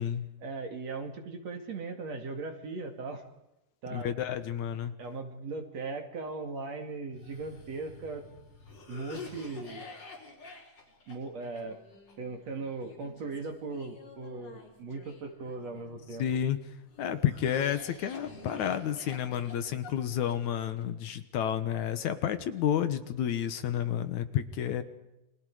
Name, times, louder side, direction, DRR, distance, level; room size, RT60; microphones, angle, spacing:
voice 1, 0.4-3.2 3.8-4.1 5.0-8.2 8.9-9.9 11.1-11.8 12.2-16.2, right 3 dB, 55° right, 5 dB, 3.4 m, -38 dB
voice 2, 3.9-4.9 16.2-16.6 17.0-24.8, left 9 dB, 70° left, 11 dB, 2.4 m, -30 dB
Cough, 7.1-16.3 16.9-20.8, left 3 dB, 50° left, 5.6 m, -49 dB
29.5 x 25.0 x 4.9 m, 0.92 s
omnidirectional pair, 3.7 m